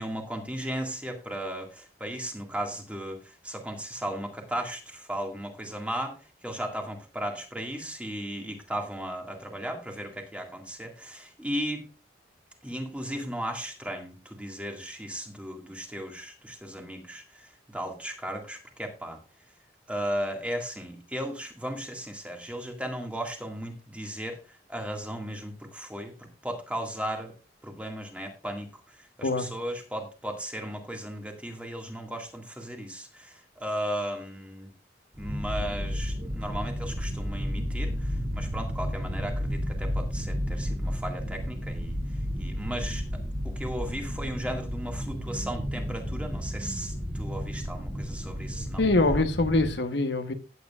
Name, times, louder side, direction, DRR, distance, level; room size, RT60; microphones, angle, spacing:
voice 1, 0.0-6.1 6.4-11.8 12.6-19.2 19.9-24.4 24.7-27.3 27.6-28.7 29.2-34.7 35.2-42.0 42.4-43.0 43.4-48.8, equal, 5° right, 1.9 m, -36 dB
sound 1, 35.1-49.8, equal, 30° right, 2.7 m, -32 dB
voice 2, 48.8-50.3, left 2 dB, 70° left, 1.1 m, -24 dB
14.5 x 9.3 x 2.4 m
head